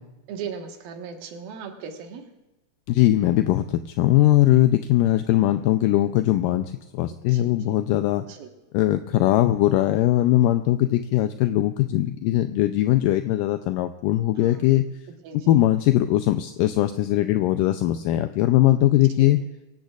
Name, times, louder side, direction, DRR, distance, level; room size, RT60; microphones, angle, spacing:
voice 1, 0.3-2.2 7.1-7.7 8.1-8.5 14.4-14.6 15.2-15.6 19.2-19.3, right 6 dB, 85° right, 3 dB, 3.3 m, -38 dB
voice 2, 2.9-8.3 8.7-14.9 15.5-19.4, left 14 dB, 80° left, 8 dB, 2.1 m, -20 dB
24.0 x 16.5 x 2.4 m, 1.0 s
omnidirectional pair, 4.1 m